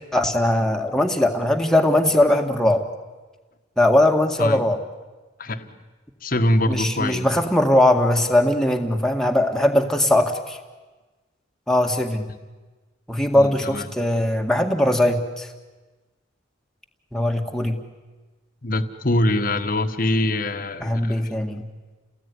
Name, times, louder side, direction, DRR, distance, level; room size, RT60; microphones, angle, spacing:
voice 1, 0.1-2.8 3.8-4.8 6.7-10.6 11.7-12.3 13.1-15.5 17.1-17.8 20.8-21.6, left 1 dB, 5° left, 3 dB, 2.0 m, -20 dB
voice 2, 5.4-5.7 6.2-7.4 13.3-13.9 18.6-21.2, left 1 dB, 45° left, 9 dB, 1.5 m, -23 dB
30.0 x 19.0 x 9.9 m, 1.3 s
head